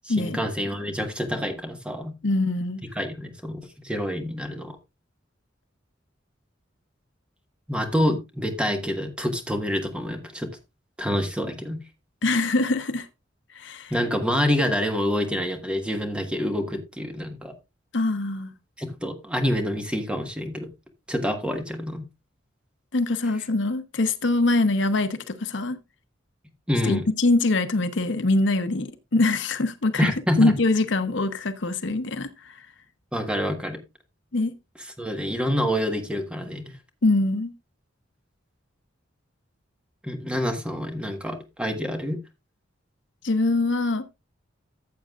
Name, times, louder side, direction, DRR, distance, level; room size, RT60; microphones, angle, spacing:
voice 1, 0.0-2.1 2.9-4.8 7.7-10.5 11.0-11.8 13.9-17.5 18.8-20.7 21.1-22.0 26.7-27.0 30.0-30.6 33.1-33.8 35.0-36.6 40.0-42.2, equal, 5° right, 1.4 m, -27 dB
voice 2, 2.2-2.8 12.2-13.1 13.5-13.9 17.9-18.5 22.9-25.8 26.8-32.6 34.3-34.5 37.0-37.5 43.2-44.0, left 2 dB, 70° left, 0.9 m, -23 dB
14.5 x 7.5 x 2.4 m
head